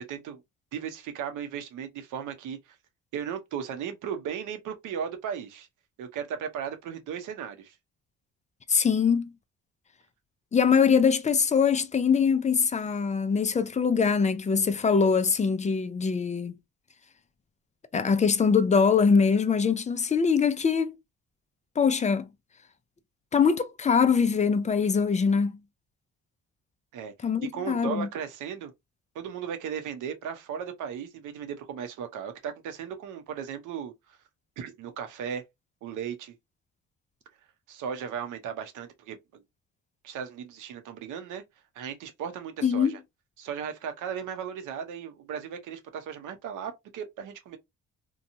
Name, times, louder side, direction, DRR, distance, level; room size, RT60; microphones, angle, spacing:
voice 1, 0.1-0.4 0.7-2.8 3.1-5.7 6.0-7.7 26.9-27.1 27.5-28.7 29.1-34.2 34.6-35.4 35.8-36.3 37.7-39.4 40.0-41.4 41.7-43.0 43.4-47.6, right 8 dB, 85° right, 0.8 m, -36 dB
voice 2, 8.7-9.3 10.5-16.6 17.9-21.0 21.8-22.3 23.3-25.5 27.2-28.1 42.6-42.9, left 6 dB, 25° left, 0.4 m, -23 dB
2.9 x 2.2 x 2.6 m
cardioid pair, 90°, 30 cm